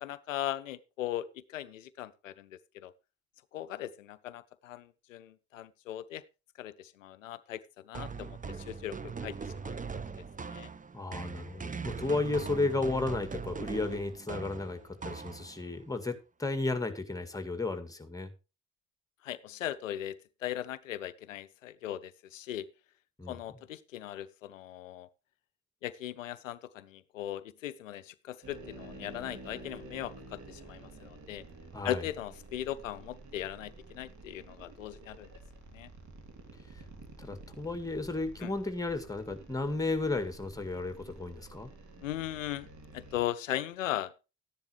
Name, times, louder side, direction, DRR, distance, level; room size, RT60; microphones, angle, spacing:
voice 1, 0.0-2.9 3.5-6.2 6.6-9.4 9.6-9.7 10.5-10.7 19.2-20.1 20.4-22.7 23.3-25.1 25.8-31.4 31.8-35.3 35.7-35.9 38.4-38.5 42.0-42.7 42.9-44.1, left 12 dB, 85° left, 0.5 m, -38 dB
sound 1, 7.9-15.8, right 5 dB, 20° right, 0.9 m, -41 dB
voice 2, 10.9-18.3 23.2-23.4 31.7-32.0 37.2-41.7, left 2 dB, 10° left, 2.0 m, -33 dB
sound 2, 28.4-43.2, right 2 dB, 50° right, 2.8 m, -50 dB
13.0 x 10.5 x 3.0 m
figure-of-eight pair, 45°, 37 cm